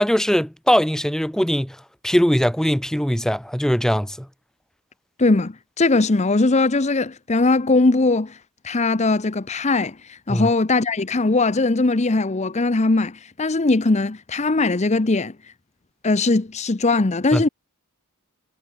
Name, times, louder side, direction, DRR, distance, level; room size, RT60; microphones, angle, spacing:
voice 1, 0.0-1.8 2.0-4.3 10.3-10.5 17.3-17.5, equal, ahead, 0.9 m, -20 dB
voice 2, 5.2-8.4 8.6-15.3 16.0-17.5, left 3 dB, 30° left, 0.7 m, -20 dB
head